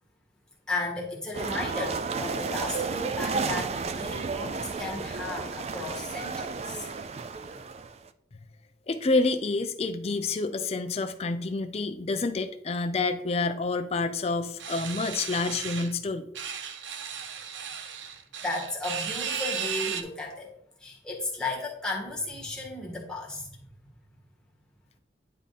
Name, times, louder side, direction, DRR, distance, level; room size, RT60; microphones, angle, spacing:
voice 1, 0.7-6.9 17.2-17.6 18.4-20.5 20.8-23.6, left 2 dB, 5° left, -4 dB, 1.6 m, -35 dB
sound 1, 1.3-8.1, right 4 dB, 35° right, 0.3 m, -32 dB
voice 2, 8.9-16.3, left 3 dB, 35° left, 7 dB, 0.4 m, -28 dB
sound 2, 14.6-15.9 16.4-20.0, right 7 dB, 85° right, 0.7 m, -35 dB
9.9 x 3.6 x 4.1 m, 0.71 s
head